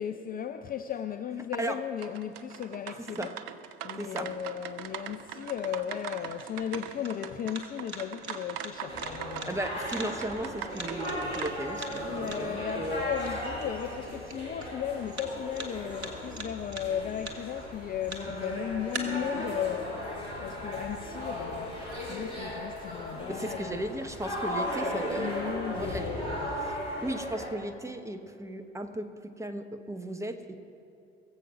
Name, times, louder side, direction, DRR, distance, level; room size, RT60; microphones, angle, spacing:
voice 1, 0.0-3.3 3.8-9.6 12.1-20.0 20.4-23.8 24.8-26.5, left 9 dB, 25° left, 8 dB, 0.5 m, -36 dB
sound 1, 2.0-11.5, right 9 dB, 50° right, 0.7 m, -42 dB
voice 2, 4.0-4.3 9.5-13.1 23.3-25.3 25.7-26.1 26.6-26.8 27.0-30.6, right 1 dB, 10° right, 8 dB, 1.0 m, -36 dB
sound 2, 4.0-19.0, right 2 dB, 75° right, 1.3 m, -46 dB
sound 3, 8.9-27.5, equal, 85° left, 3.4 m, -36 dB
20.5 x 7.7 x 5.9 m, 2.8 s
figure-of-eight pair, 60°, 33 cm